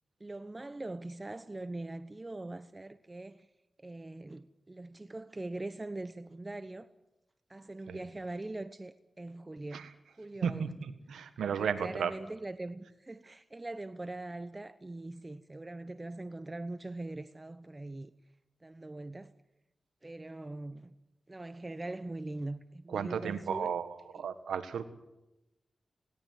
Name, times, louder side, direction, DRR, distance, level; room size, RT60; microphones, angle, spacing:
voice 1, 0.2-3.5 3.8-6.9 7.5-9.9 10.2-10.7 11.6-18.1 18.6-19.3 20.0-20.9 21.3-23.7, right 2 dB, 30° right, 1.0 m, -42 dB
voice 2, 10.4-12.1 22.9-24.9, right 7 dB, 90° right, 1.6 m, -34 dB
20.0 x 17.5 x 9.4 m
cardioid pair, 45°, 0 cm